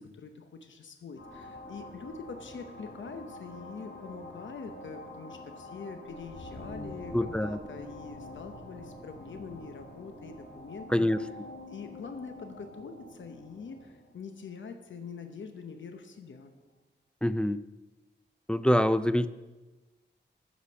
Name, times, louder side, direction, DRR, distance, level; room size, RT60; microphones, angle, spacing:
voice 1, 0.0-11.3 11.7-16.6, left 5 dB, 90° left, 6 dB, 0.8 m, -44 dB
sound 1, 1.2-15.3, left 1 dB, 75° left, 3.3 m, -46 dB
voice 2, 7.1-7.6 10.9-11.2 17.2-17.6 18.5-19.3, left 1 dB, 5° left, 14 dB, 0.3 m, -25 dB
9.4 x 5.1 x 6.7 m, 1.2 s
wide cardioid pair, 90°, 19 cm